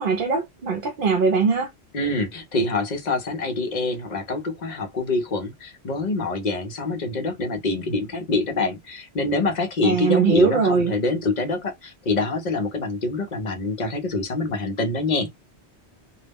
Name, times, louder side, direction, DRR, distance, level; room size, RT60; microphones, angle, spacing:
voice 1, 0.0-1.7 9.8-10.9, right 5 dB, 60° right, 0.7 m, -21 dB
voice 2, 1.9-15.3, left 3 dB, 50° left, 0.6 m, -25 dB
2.2 x 2.0 x 3.3 m
omnidirectional pair, 1.1 m